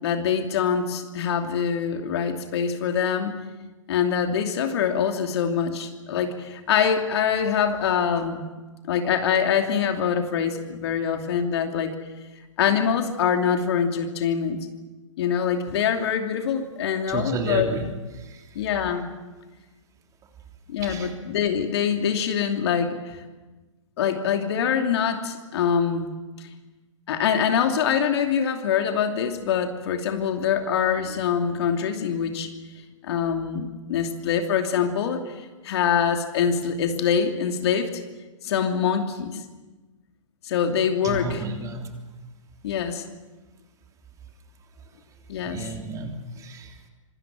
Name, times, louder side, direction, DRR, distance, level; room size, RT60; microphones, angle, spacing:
voice 1, 0.0-3.4 3.9-8.4 8.9-11.9 12.6-14.6 15.2-17.7 18.5-19.1 20.7-23.2 24.0-26.1 26.4-26.5 27.1-32.5 33.0-37.9 38.4-39.4 40.4-41.4 42.6-43.0 45.3-45.6, left 7 dB, 55° left, 5 dB, 2.8 m, -24 dB
voice 2, 17.1-17.9 18.1-18.6 20.8-21.1 41.0-41.9 45.4-46.9, right 3 dB, 20° right, 3 dB, 3.2 m, -32 dB
26.0 x 19.5 x 7.6 m, 1.2 s
hypercardioid pair, 120°, 16 cm